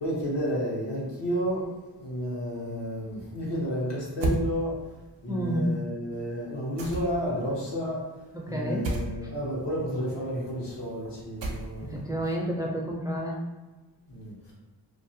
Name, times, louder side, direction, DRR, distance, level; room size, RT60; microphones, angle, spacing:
voice 1, 0.0-4.7 5.2-8.0 8.5-12.0 14.1-14.5, equal, 75° left, -5 dB, 0.9 m, -31 dB
sound 1, 4.2-4.5 6.8-7.3 8.8-9.1 11.4-11.9, right 2 dB, 80° right, 0.5 m, -30 dB
voice 2, 5.3-5.7 8.3-8.8 11.8-13.4, equal, 10° right, -2 dB, 0.4 m, -30 dB
2.4 x 2.0 x 2.6 m, 1.2 s
cardioid pair, 50°, 43 cm